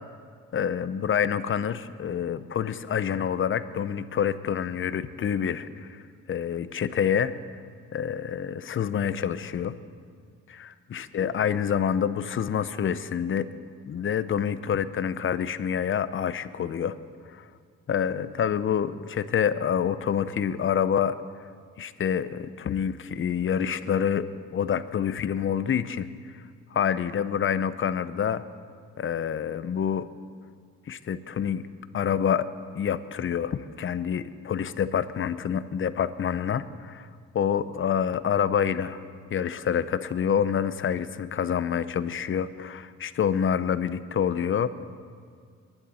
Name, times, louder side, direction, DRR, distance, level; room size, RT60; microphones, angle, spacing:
voice 1, 0.5-6.0 6.3-7.3 7.9-9.7 10.5-13.5 13.9-16.9 17.3-17.4 17.9-21.2 21.8-24.3 24.5-26.1 26.7-28.4 29.0-30.1 30.9-31.6 31.9-32.5 32.7-37.1 37.3-39.0 39.3-44.8, left 8 dB, 40° left, 14 dB, 0.7 m, -27 dB
22.5 x 10.5 x 4.2 m, 2.1 s
cardioid pair, 90°, 30 cm